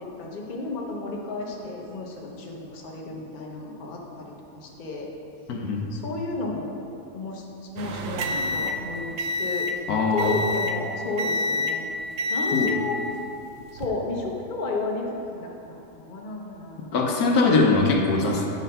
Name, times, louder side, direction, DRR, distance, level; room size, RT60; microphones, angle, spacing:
voice 1, 0.0-5.1 5.9-6.7 7.1-7.4 7.7-9.7 10.1-11.9 12.3-13.0 13.7-16.9, left 3 dB, 40° left, -1 dB, 0.8 m, -32 dB
voice 2, 5.5-5.8 9.9-10.4 12.5-12.7 16.9-18.5, left 3 dB, 70° left, 0 dB, 1.2 m, -21 dB
sound 1, 7.8-9.8 10.2-10.8 11.2-11.8 12.2-12.8 13.6-13.9, left 2 dB, 85° right, 1.2 m, -28 dB
8.5 x 4.0 x 5.5 m, 2.7 s
omnidirectional pair, 1.7 m